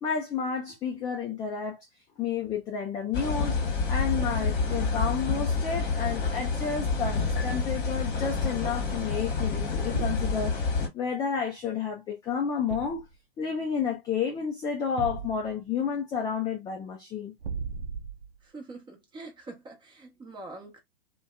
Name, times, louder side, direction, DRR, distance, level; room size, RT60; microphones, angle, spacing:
voice 1, 0.0-1.9 2.2-3.6 3.9-10.6 10.9-13.1 13.4-17.3, left 6 dB, 15° left, 0.3 m, -31 dB
sound 1, 3.1-10.9, left 4 dB, 35° left, 1.1 m, -28 dB
Thump thud, 4.1-4.6 7.0-7.7 9.9-10.4 12.7-13.2 15.0-15.6 17.4-18.4, right 6 dB, 60° right, 0.6 m, -37 dB
voice 2, 18.4-20.8, right 2 dB, 15° right, 0.8 m, -44 dB
2.5 x 2.2 x 2.2 m
hypercardioid pair, 115°, 30 cm